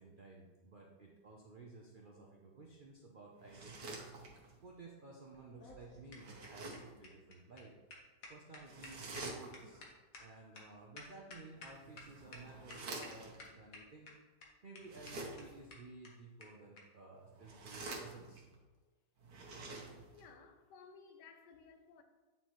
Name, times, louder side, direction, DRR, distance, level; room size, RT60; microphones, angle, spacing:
voice 1, 0.0-4.1 4.6-7.7 8.3-9.8 10.2-14.1 14.6-18.4, right 3 dB, 65° right, 0.5 m, -55 dB
sound 1, 3.4-4.6 6.1-7.0 8.7-9.8 11.6-13.5 14.8-15.7 17.3-18.5 19.2-20.3, right 2 dB, 80° right, 1.7 m, -48 dB
sound 2, 5.3-12.0 12.3-12.4 12.7-13.1 13.4-14.1 14.4-14.5 14.7-14.8 15.1-15.2 15.4-15.5 15.7-16.1 16.4-16.5 16.8-16.9 17.7-17.8, left 3 dB, 55° left, 1.4 m, -53 dB
voice 2, 20.1-22.0, left 5 dB, 85° left, 1.3 m, -58 dB
9.0 x 4.2 x 3.1 m
omnidirectional pair, 1.8 m